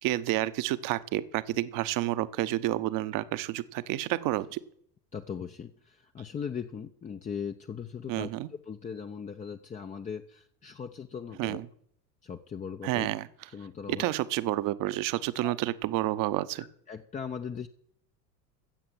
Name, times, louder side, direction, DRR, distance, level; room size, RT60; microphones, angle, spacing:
voice 1, 0.0-4.6 8.1-8.5 11.4-11.7 12.8-13.3 13.9-16.7, right 15 dB, 40° right, 15 dB, 0.9 m, -30 dB
voice 2, 5.1-8.3 8.7-11.6 12.2-13.1 13.5-14.1 15.4-15.6 16.9-17.7, left 7 dB, 15° left, 5 dB, 0.6 m, -39 dB
14.5 x 7.8 x 7.5 m, 0.66 s
figure-of-eight pair, 70°, 50 cm